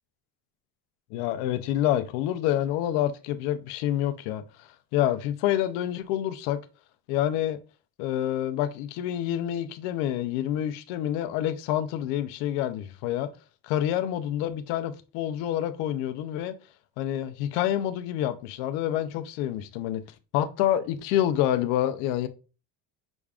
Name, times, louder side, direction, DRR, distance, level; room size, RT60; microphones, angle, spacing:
voice 1, 1.1-6.6 7.1-7.6 8.0-13.3 13.6-16.5 17.0-20.0 20.3-22.3, left 12 dB, 85° left, 0.7 m, -27 dB
6.1 x 2.4 x 3.4 m
cardioid pair, 170°, 38 cm